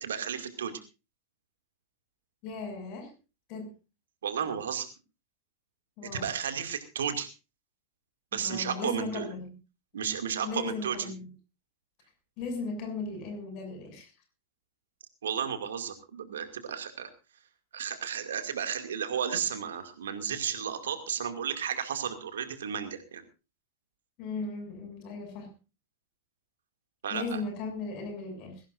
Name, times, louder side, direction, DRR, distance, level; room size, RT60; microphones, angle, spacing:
voice 1, 0.0-0.8 4.2-4.9 6.1-7.3 8.3-9.3 9.9-11.1 15.2-17.1 17.7-23.2 27.0-27.4, right 8 dB, 65° right, 8 dB, 2.4 m, -33 dB
voice 2, 2.4-3.1 3.5-3.7 6.0-6.3 8.3-9.5 10.4-11.3 12.4-14.1 24.2-25.5 27.1-28.6, left 3 dB, 40° left, 5 dB, 7.1 m, -37 dB
22.0 x 17.0 x 2.6 m, 0.31 s
figure-of-eight pair, 90°, 0 cm